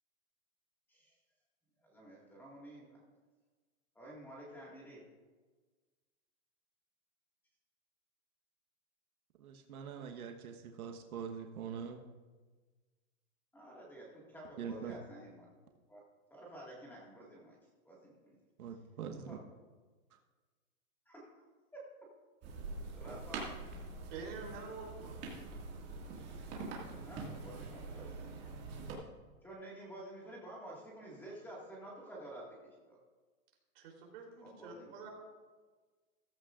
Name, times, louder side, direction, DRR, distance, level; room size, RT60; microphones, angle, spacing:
voice 1, 1.8-3.0 4.0-5.0 13.5-15.5 15.9-16.0 16.3-17.6 17.9-18.4 19.3-19.4 21.1-21.3 21.7-21.8 23.0-23.6 26.9-28.2 29.4-32.5 32.9-33.0 34.4-35.1, right 1 dB, 5° left, -4 dB, 1.9 m, -50 dB
voice 2, 9.4-12.0 14.6-14.9 18.6-19.4, right 7 dB, 85° right, 4 dB, 1.4 m, -43 dB
sound 1, 22.4-28.9, right 3 dB, 25° right, 2.0 m, -45 dB
voice 3, 24.1-25.1 33.8-35.1, right 4 dB, 45° right, -1 dB, 3.6 m, -47 dB
14.5 x 14.0 x 2.5 m, 1.4 s
hypercardioid pair, 160°, 42 cm